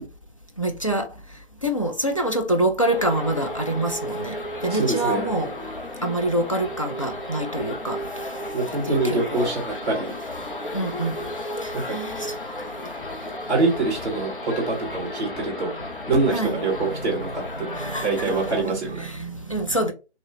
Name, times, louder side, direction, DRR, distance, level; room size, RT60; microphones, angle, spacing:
voice 1, 0.6-1.1 1.6-5.5 6.0-8.0 8.8-9.5 10.7-11.2 11.6-12.3 16.3-16.6 17.0-17.3 17.7-19.9, right 1 dB, 30° left, 0.4 m, -26 dB
sound 1, 2.8-18.6, left 1 dB, 50° left, 0.9 m, -33 dB
voice 2, 4.7-5.3 8.5-10.1 11.7-11.9 12.9-13.2 13.5-15.7 16.1-17.7 18.0-19.1, right 3 dB, 15° right, 1.1 m, -25 dB
3.0 x 2.9 x 2.8 m
figure-of-eight pair, 155°, 33 cm